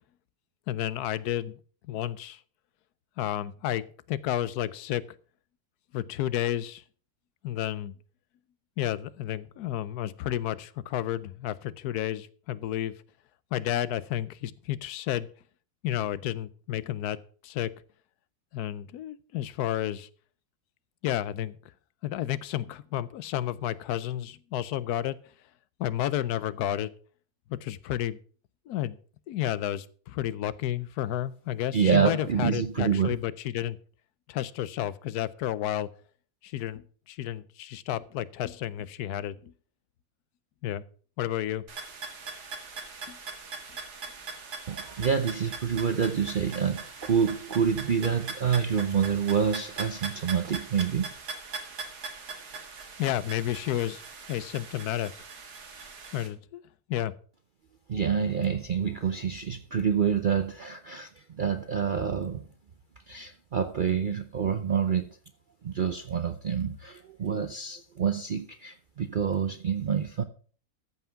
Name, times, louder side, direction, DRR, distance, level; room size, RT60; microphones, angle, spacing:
voice 1, 0.7-1.6 1.9-2.4 3.2-5.0 5.9-6.8 7.4-7.9 8.8-12.9 13.5-15.3 15.8-17.2 17.4-17.7 18.5-20.1 21.0-21.6 22.0-25.2 25.8-26.9 27.5-28.2 28.7-29.0 29.3-33.8 34.3-35.9 36.4-39.5 40.6-40.8 41.2-41.6 43.1-43.2 53.0-54.0 54.3-55.1 56.1-56.6 56.9-57.1, left 12 dB, 80° left, 18 dB, 1.2 m, -31 dB
voice 2, 31.7-33.2 44.7-51.1 57.9-62.4 63.1-65.1 65.6-70.2, right 7 dB, 60° right, 9 dB, 0.5 m, -27 dB
sound 1, 41.7-56.3, right 4 dB, 85° right, 2.3 m, -41 dB
13.5 x 5.8 x 5.7 m, 0.42 s
omnidirectional pair, 1.6 m